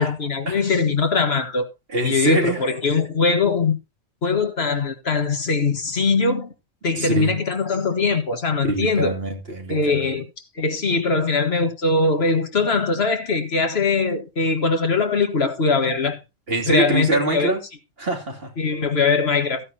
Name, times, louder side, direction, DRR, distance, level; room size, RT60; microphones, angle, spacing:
voice 1, 0.0-1.7 2.0-3.8 4.2-6.5 6.8-9.2 9.7-10.3 10.6-16.2 16.7-17.5 18.6-19.6, left 4 dB, 65° left, 1.8 m, -21 dB
voice 2, 1.9-2.7 6.9-7.3 8.6-10.0 16.5-17.6 18.0-18.5, right 2 dB, 60° right, 3.0 m, -24 dB
14.5 x 9.7 x 2.9 m
omnidirectional pair, 1.1 m